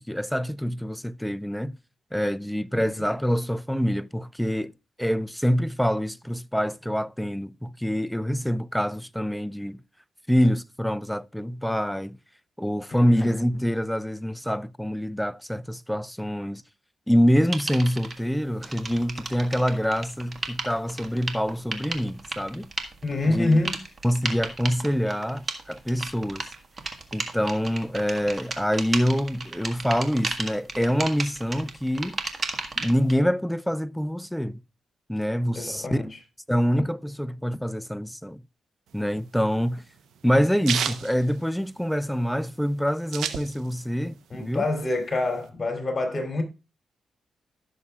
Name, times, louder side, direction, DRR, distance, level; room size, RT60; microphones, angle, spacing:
voice 1, 0.0-1.7 2.1-4.7 5.0-9.8 10.3-12.2 12.6-16.6 17.1-22.7 23.3-23.6 24.0-26.5 27.1-32.2 32.8-34.6 35.1-36.0 36.5-38.4 38.9-39.8 40.2-44.7, equal, ahead, 0.4 m, -25 dB
voice 2, 12.9-13.3 23.0-23.7 35.5-36.1 44.3-46.4, left 2 dB, 35° left, 3.3 m, -26 dB
sound 1, 17.5-18.1 18.6-33.1, right 3 dB, 45° right, 1.6 m, -34 dB
sound 2, 38.9-42.1 42.4-42.5 42.7-44.0 44.3-45.5, right 8 dB, 85° right, 0.9 m, -31 dB
15.5 x 6.8 x 2.4 m
cardioid pair, 70°, 0 cm